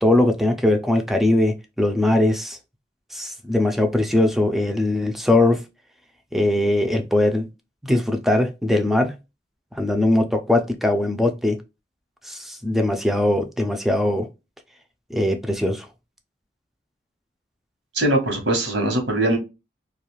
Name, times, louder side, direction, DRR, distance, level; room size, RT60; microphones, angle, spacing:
voice 1, 0.0-2.6 3.1-5.6 6.3-7.5 7.8-9.1 9.7-11.6 12.2-14.3 15.1-15.9, left 1 dB, ahead, 0.3 m, -20 dB
voice 2, 17.9-19.4, right 1 dB, 75° right, 1.0 m, -21 dB
2.4 x 2.3 x 3.0 m
head